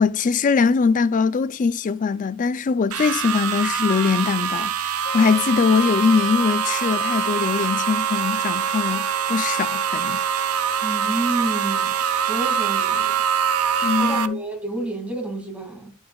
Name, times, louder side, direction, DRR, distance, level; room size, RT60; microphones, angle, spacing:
voice 1, 0.0-10.2 13.8-14.4, left 5 dB, 35° left, 0.4 m, -22 dB
sound 1, 2.9-14.3, right 8 dB, 85° right, 0.6 m, -24 dB
Wind instrument woodwind instrument, 5.0-14.4, right 1 dB, 55° left, 1.3 m, -36 dB
voice 2, 10.8-13.2 14.0-15.9, right 2 dB, 5° right, 2.3 m, -29 dB
10.5 x 7.2 x 2.3 m
head